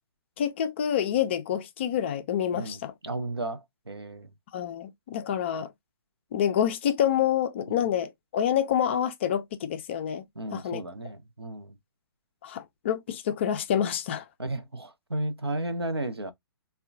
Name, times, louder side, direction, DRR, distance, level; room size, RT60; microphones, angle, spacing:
voice 1, 0.4-2.9 4.5-5.7 6.3-10.2 10.5-10.8 12.4-14.2, left 9 dB, 30° left, 0.3 m, -27 dB
voice 2, 2.5-3.6 3.9-4.3 7.7-7.9 10.4-11.7 14.4-16.3, right 2 dB, 80° right, 0.6 m, -33 dB
3.5 x 2.1 x 2.4 m
figure-of-eight pair, 130°, 13 cm